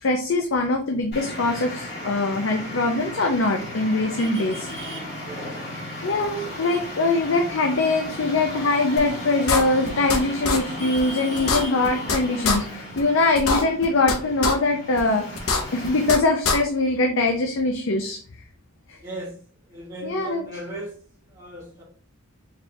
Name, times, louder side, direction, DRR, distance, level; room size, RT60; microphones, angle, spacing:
voice 1, 0.0-4.7 6.0-15.2 15.7-18.2 20.0-20.5, left 2 dB, 60° left, 2 dB, 0.6 m, -22 dB
Traffic noise roadway noise, 1.1-16.1, left 1 dB, 45° left, 2.3 m, -35 dB
sound 1, 9.0-9.1 9.5-10.2 10.4-10.6 11.0-11.1 11.4-12.2 12.4-12.6 13.0-13.1 13.4-14.1 14.4-14.5 15.0-15.1 15.4-16.2 16.4-16.6, left 3 dB, 80° left, 0.9 m, -22 dB
voice 2, 19.0-19.3 19.7-20.9 21.3-21.8, right 1 dB, 15° right, -7 dB, 1.9 m, -36 dB
4.8 x 3.5 x 2.7 m, 0.42 s
head